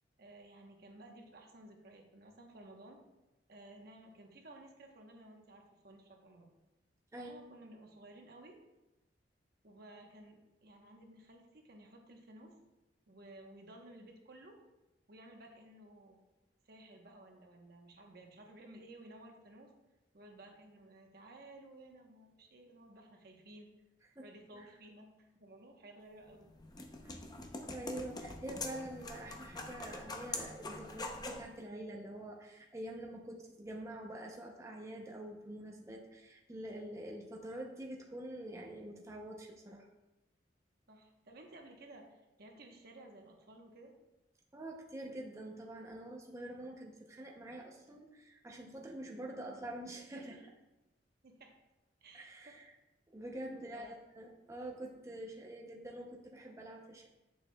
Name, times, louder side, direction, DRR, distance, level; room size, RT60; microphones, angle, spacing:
voice 1, 0.2-3.0 3.5-6.5 7.2-8.6 9.6-12.5 13.1-14.6 15.1-16.2 16.6-19.7 20.1-23.7 24.2-26.5 40.9-43.9 51.2-51.6 52.0-52.5 53.5-54.0, right 1 dB, 60° right, 2 dB, 1.0 m, -55 dB
voice 2, 7.1-7.5 24.2-24.3 24.5-24.7 27.0-27.1 27.6-39.9 44.5-50.5 52.1-52.7 53.1-57.1, right 1 dB, 15° right, 0 dB, 0.6 m, -46 dB
sound 1, 26.2-31.5, left 2 dB, 25° left, 0.6 m, -44 dB
8.1 x 6.7 x 2.2 m, 1.0 s
head